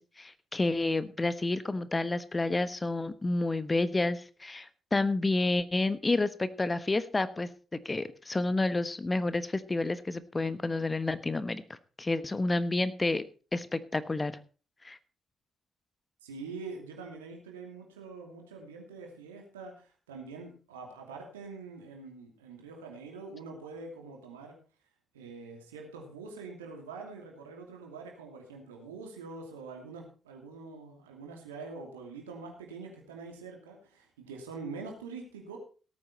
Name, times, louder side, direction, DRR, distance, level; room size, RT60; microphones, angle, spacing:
voice 1, 0.0-7.5 7.8-13.2 13.5-14.3 14.8-15.0, left 2 dB, 25° left, 14 dB, 1.2 m, -30 dB
voice 2, 16.2-24.6 25.1-35.6, right 4 dB, 85° right, 1 dB, 2.7 m, -44 dB
17.5 x 9.0 x 4.3 m, 0.37 s
hypercardioid pair, 40°, 0 cm